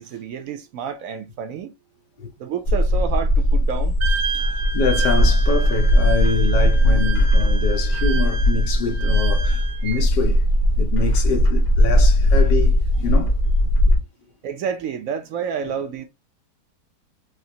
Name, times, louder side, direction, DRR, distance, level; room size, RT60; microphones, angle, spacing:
voice 1, 0.0-1.7 2.4-4.0 14.4-16.0, right 7 dB, 70° right, 0.8 m, -29 dB
Bird, 2.6-14.0, equal, 50° left, 1.2 m, -18 dB
Wind instrument woodwind instrument, 4.0-10.0, right 5 dB, 85° right, 1.2 m, -31 dB
voice 2, 4.3-10.5 10.8-13.4, left 4 dB, 85° left, 1.5 m, -26 dB
4.8 x 2.0 x 2.7 m
omnidirectional pair, 1.8 m